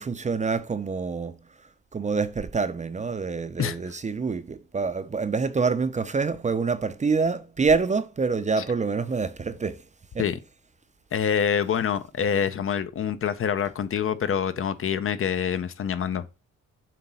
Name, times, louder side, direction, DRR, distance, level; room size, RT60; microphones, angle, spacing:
voice 1, 0.0-9.9 10.1-10.2, right 4 dB, 25° right, 0.6 m, -26 dB
voice 2, 11.1-16.3, left 8 dB, 45° left, 0.7 m, -26 dB
7.6 x 3.0 x 5.5 m
cardioid pair, 90°, 30 cm